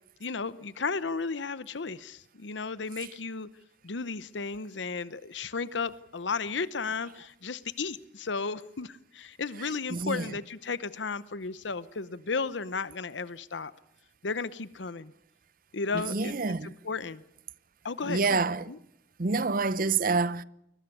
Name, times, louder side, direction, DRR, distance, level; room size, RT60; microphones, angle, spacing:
voice 1, 0.2-3.5 3.8-13.7 14.2-15.1 15.7-17.2 17.8-18.4 18.7-18.8, left 4 dB, 80° left, 0.9 m, -34 dB
voice 2, 9.9-10.3 15.9-16.7 18.0-18.7 19.2-20.4, right 4 dB, 50° right, 0.7 m, -27 dB
22.0 x 20.0 x 6.9 m
head